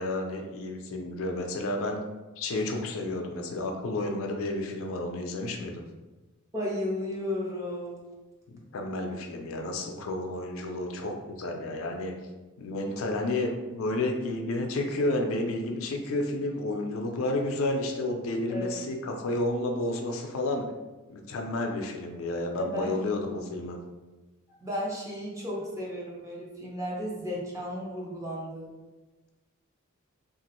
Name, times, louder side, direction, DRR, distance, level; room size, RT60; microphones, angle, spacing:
voice 1, 0.0-2.0 2.4-5.8 8.7-12.1 12.6-20.7 21.1-23.8, left 2 dB, 70° left, 3 dB, 0.4 m, -31 dB
voice 2, 6.5-8.0 18.5-18.8 22.5-23.0 24.6-28.7, left 1 dB, 15° right, -4 dB, 0.6 m, -34 dB
2.9 x 2.4 x 2.9 m, 1.1 s
head